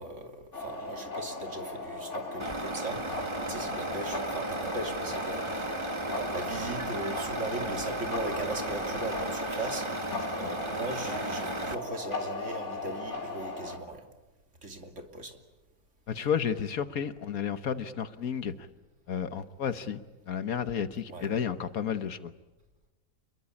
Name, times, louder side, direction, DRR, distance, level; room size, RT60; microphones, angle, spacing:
voice 1, 0.0-14.1 14.6-15.4 21.1-21.3, right 2 dB, 50° right, 3.1 m, -39 dB
sound 1, 0.5-13.8, left 2 dB, 45° left, 3.7 m, -37 dB
Truck, 2.4-11.8, right 2 dB, 20° right, 1.4 m, -35 dB
voice 2, 16.1-18.5 19.1-20.0 20.3-22.3, left 7 dB, 65° left, 1.5 m, -32 dB
28.0 x 22.5 x 8.6 m
omnidirectional pair, 1.7 m